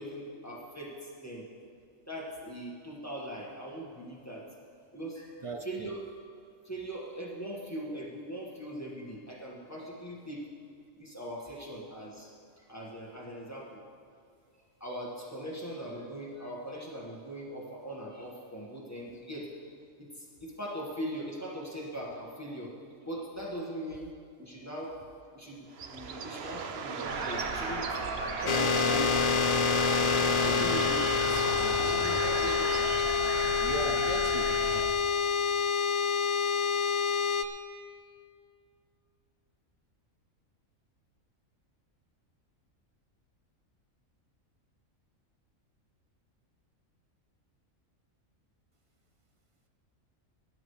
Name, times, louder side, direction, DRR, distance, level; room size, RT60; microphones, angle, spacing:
voice 1, 0.0-1.5 2.1-4.5 4.9-5.4 5.6-6.0 6.6-10.5 11.0-13.8 14.8-19.5 20.0-22.7 23.0-24.1 24.4-24.9 25.3-28.0 28.3-29.1 30.2-32.6, right 1 dB, 10° left, -4 dB, 1.8 m, -40 dB
voice 2, 5.4-5.9 33.6-34.6, right 2 dB, 40° right, 5 dB, 0.4 m, -38 dB
Bird, 25.7-33.4, right 6 dB, 55° right, 0.9 m, -40 dB
sound 1, 27.0-34.8, right 2 dB, 90° right, 1.7 m, -36 dB
sound 2, 28.5-37.4, left 6 dB, 70° left, 0.3 m, -27 dB
18.5 x 11.0 x 3.4 m, 2.3 s
omnidirectional pair, 1.4 m